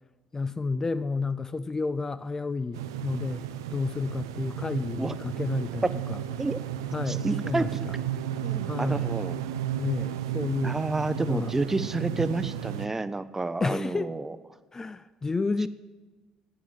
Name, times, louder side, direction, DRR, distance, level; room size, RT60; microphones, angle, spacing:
voice 1, 0.3-3.4 3.7-5.8 6.1-6.2 6.9-7.9 8.7-9.1 9.8-10.8 11.2-11.5 13.6-14.1 14.7-15.7, left 4 dB, 25° left, 0.4 m, -30 dB
sound 1, 2.7-12.9, right 10 dB, 85° right, 0.5 m, -33 dB
voice 2, 7.1-7.8 8.4-9.5 10.6-14.4 15.6-15.7, right 2 dB, 20° right, 0.7 m, -30 dB
10.5 x 8.9 x 7.3 m
hypercardioid pair, 55°, 2 cm